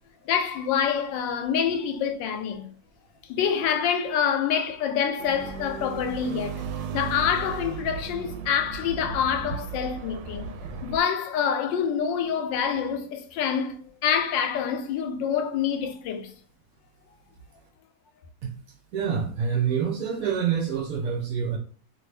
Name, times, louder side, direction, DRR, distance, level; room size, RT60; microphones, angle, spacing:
voice 1, 0.3-2.7 3.3-6.6 6.9-10.5 10.8-13.8 14.0-16.3, left 8 dB, 85° left, 1.3 m, -26 dB
sound 1, 5.2-11.0, right 5 dB, 80° right, 1.2 m, -35 dB
voice 2, 18.9-21.6, right 7 dB, 65° right, 1.0 m, -26 dB
2.9 x 2.8 x 3.3 m
omnidirectional pair, 1.9 m